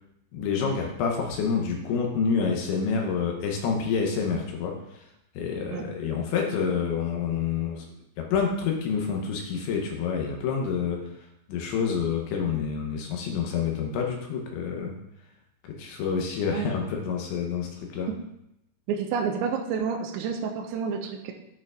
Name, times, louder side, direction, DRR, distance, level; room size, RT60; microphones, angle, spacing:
voice 1, 0.3-5.0 5.4-7.9 8.2-11.0 11.5-14.9 15.7-18.1, left 6 dB, 75° left, 1 dB, 3.0 m, -28 dB
voice 2, 18.9-21.3, right 6 dB, 85° right, 2 dB, 2.7 m, -29 dB
13.0 x 4.6 x 2.4 m, 0.81 s
omnidirectional pair, 5.6 m